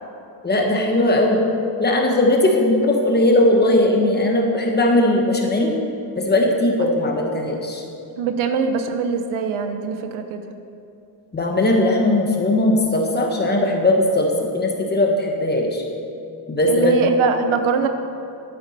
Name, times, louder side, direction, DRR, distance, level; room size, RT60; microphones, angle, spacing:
voice 1, 0.4-1.4 1.8-5.7 6.1-7.8 11.3-15.8 16.5-17.0, left 1 dB, 20° left, 1 dB, 1.1 m, -18 dB
voice 2, 8.2-10.4 16.7-17.9, right 5 dB, 75° right, 7 dB, 1.0 m, -22 dB
12.5 x 9.1 x 4.2 m, 2.7 s
cardioid pair, 160°, 48 cm